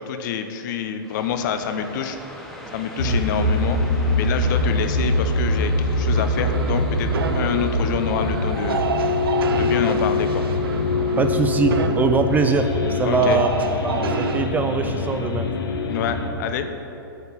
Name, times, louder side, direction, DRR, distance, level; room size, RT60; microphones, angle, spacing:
voice 1, 0.0-2.2 2.7-3.8 4.2-8.9 9.6-10.4 13.1-13.4 15.8-16.7, left 8 dB, 55° left, 8 dB, 0.7 m, -27 dB
sound 1, 1.0-14.4, equal, 5° left, 1.0 m, -41 dB
sound 2, 3.0-16.3, left 2 dB, 80° left, 1.1 m, -23 dB
sound 3, 6.1-14.5, right 5 dB, 85° right, 0.6 m, -29 dB
voice 2, 11.2-13.5 13.8-15.5, right 5 dB, 15° right, 7 dB, 0.3 m, -22 dB
8.1 x 4.3 x 7.1 m, 3.0 s
hypercardioid pair, 130°, 12 cm